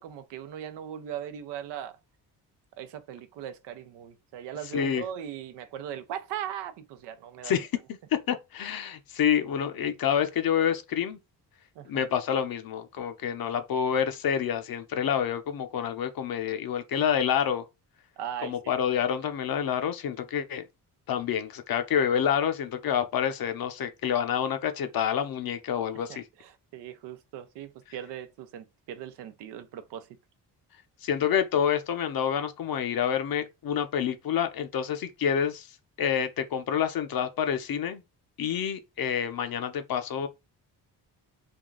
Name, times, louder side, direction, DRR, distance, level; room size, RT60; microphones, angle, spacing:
voice 1, 0.0-2.0 2.8-7.5 11.8-11.9 18.2-18.5 26.1-30.1, right 10 dB, 85° right, 0.7 m, -39 dB
voice 2, 4.7-5.0 7.4-7.7 8.1-11.2 11.8-17.6 18.4-20.6 21.1-26.2 31.0-35.7 36.0-38.0 38.4-40.3, left 8 dB, 60° left, 0.8 m, -28 dB
3.6 x 2.3 x 3.7 m
cardioid pair, 70°, 41 cm